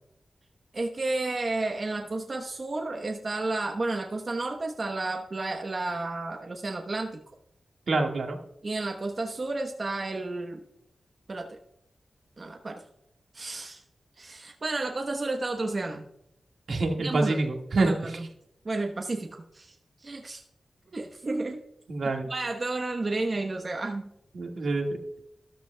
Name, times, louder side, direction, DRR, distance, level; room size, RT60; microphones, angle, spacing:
voice 1, 0.7-7.2 8.6-10.6 11.3-11.6 12.4-12.8 13.3-13.8 14.2-16.0 17.0-17.4 17.7-18.3 18.6-19.8 20.0-20.4 20.9-21.6 22.3-24.1, right 2 dB, 45° right, 3 dB, 1.0 m, -31 dB
voice 2, 7.9-8.4 16.7-18.0 21.9-22.3 24.3-25.0, right 3 dB, 80° right, 2 dB, 1.7 m, -26 dB
13.5 x 13.0 x 2.3 m, 0.78 s
wide cardioid pair, 105°, 0 cm